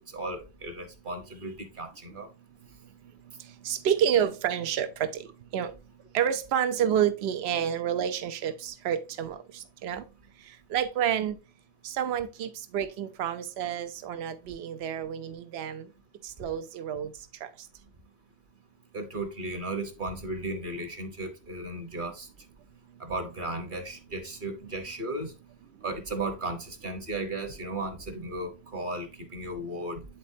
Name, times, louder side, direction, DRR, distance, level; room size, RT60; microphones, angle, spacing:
voice 1, 0.1-2.3 18.9-22.3 23.0-25.3 25.8-30.1, right 2 dB, 50° right, 1.2 m, -35 dB
voice 2, 3.6-5.1 5.5-5.7 6.1-9.4 9.8-10.0 10.7-11.3 11.8-15.8 16.4-17.1 17.4-17.5, right 9 dB, 80° right, 0.9 m, -28 dB
9.1 x 4.1 x 2.7 m
omnidirectional pair, 1.1 m